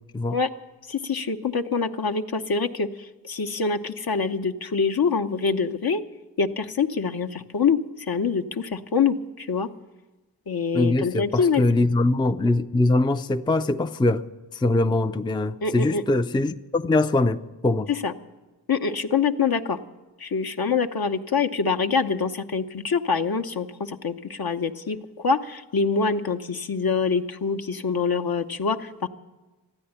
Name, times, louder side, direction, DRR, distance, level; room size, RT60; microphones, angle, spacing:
voice 1, 0.9-6.0 6.4-9.7 10.5-11.6 15.6-16.0 17.9-18.1 18.7-19.8 20.2-29.1, left 5 dB, 60° left, 0.8 m, -25 dB
voice 2, 10.7-14.2 14.5-17.9, left 2 dB, 10° left, 0.4 m, -22 dB
13.5 x 9.6 x 10.0 m
wide cardioid pair, 50°, 42 cm